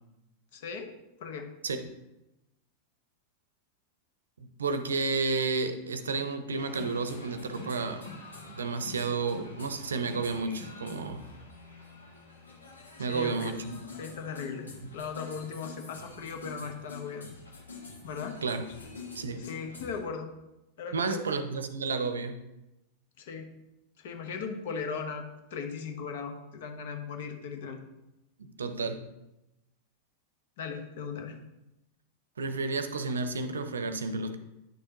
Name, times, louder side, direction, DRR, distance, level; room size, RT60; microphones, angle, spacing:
voice 1, 0.5-0.9 1.2-1.5 13.0-13.5 14.0-17.3 18.0-18.4 19.4-20.3 20.8-21.2 23.2-23.5 24.0-25.2 25.5-27.8 30.6-31.4, left 5 dB, 55° left, 5 dB, 1.0 m, -38 dB
voice 2, 4.4-8.0 8.5-11.3 13.0-13.8 18.4-18.7 19.1-19.5 20.9-22.4 28.4-29.1 32.4-34.4, right 4 dB, 70° right, 9 dB, 0.7 m, -31 dB
sound 1, 6.5-20.0, left 3 dB, 75° left, 1.3 m, -47 dB
9.4 x 6.5 x 2.9 m, 0.92 s
figure-of-eight pair, 90°, 0 cm